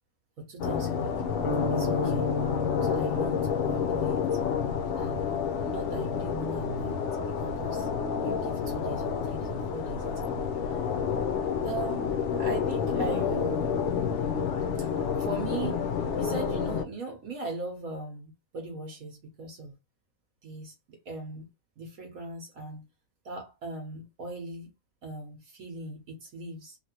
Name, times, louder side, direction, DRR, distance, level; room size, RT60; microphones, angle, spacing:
voice 1, 0.4-1.2 1.7-2.3 2.8-4.2 5.0-5.3 5.6-7.0 7.4-7.9 8.2-10.8 11.6-13.7 14.8-15.8 16.1-19.7 20.4-21.5 21.8-22.9 23.2-24.7 25.0-26.8, right 2 dB, 65° right, 1.2 m, -39 dB
sound 1, 0.6-16.8, left 6 dB, 65° left, 0.7 m, -29 dB
sound 2, 1.4-5.7, left 4 dB, 90° left, 1.2 m, -34 dB
3.3 x 2.5 x 2.8 m
omnidirectional pair, 1.7 m